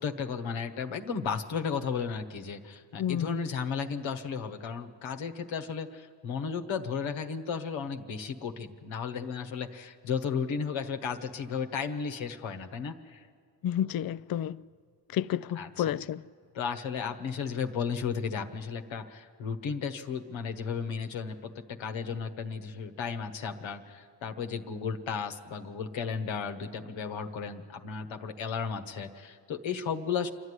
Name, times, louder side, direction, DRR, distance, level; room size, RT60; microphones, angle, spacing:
voice 1, 0.0-13.3 15.5-15.9 16.5-30.3, left 6 dB, 85° left, 1.3 m, -34 dB
voice 2, 3.0-3.4 13.6-14.6 15.1-16.2, left 10 dB, 50° left, 0.5 m, -30 dB
27.0 x 11.5 x 9.8 m
cardioid pair, 55°, 45 cm